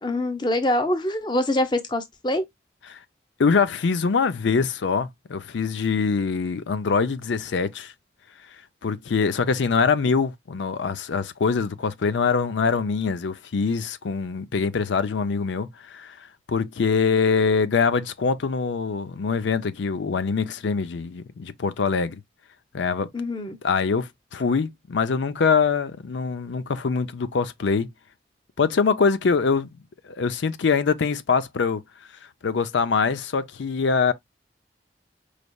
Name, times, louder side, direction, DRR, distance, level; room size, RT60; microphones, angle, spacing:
voice 1, 0.0-2.4 23.1-23.6, left 1 dB, 25° left, 0.6 m, -24 dB
voice 2, 3.4-7.9 8.8-16.2 16.5-22.2 22.7-23.1 23.6-27.9 28.6-29.7 30.0-31.8 32.4-34.1, left 5 dB, 90° left, 0.5 m, -23 dB
5.2 x 3.3 x 2.3 m
head